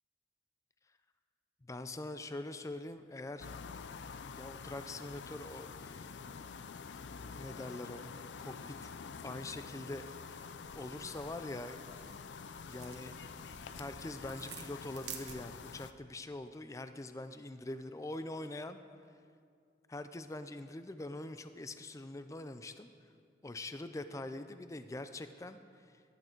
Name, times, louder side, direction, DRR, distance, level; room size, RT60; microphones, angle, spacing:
voice 1, 1.6-3.5 4.4-6.1 7.3-8.6 8.8-8.9 9.2-10.2 10.7-11.9 12.6-13.2 13.8-18.8 19.9-22.9 23.4-26.0, left 2 dB, 20° left, 10 dB, 0.4 m, -44 dB
sound 1, 3.4-15.9, left 5 dB, 85° left, 0.5 m, -47 dB
sound 2, 9.6-15.8, right 7 dB, 80° right, 1.2 m, -53 dB
14.0 x 12.0 x 4.5 m, 2.3 s
head